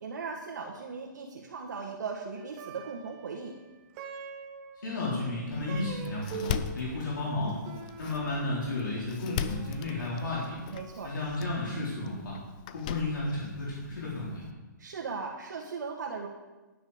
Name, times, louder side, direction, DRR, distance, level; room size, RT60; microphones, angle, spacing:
voice 1, 0.0-3.5 10.7-11.1 14.8-16.3, right 5 dB, 60° right, -1 dB, 1.5 m, -38 dB
Plucked string instrument, 2.4-11.8, right 6 dB, 25° right, 0.9 m, -46 dB
voice 2, 4.8-7.6 8.0-10.6 11.0-12.4 12.7-14.5, left 2 dB, 75° left, -6 dB, 4.1 m, -33 dB
Door, 5.5-14.5, left 8 dB, 25° left, 0.4 m, -40 dB
9.7 x 9.4 x 5.0 m, 1.2 s
hypercardioid pair, 165°, 11 cm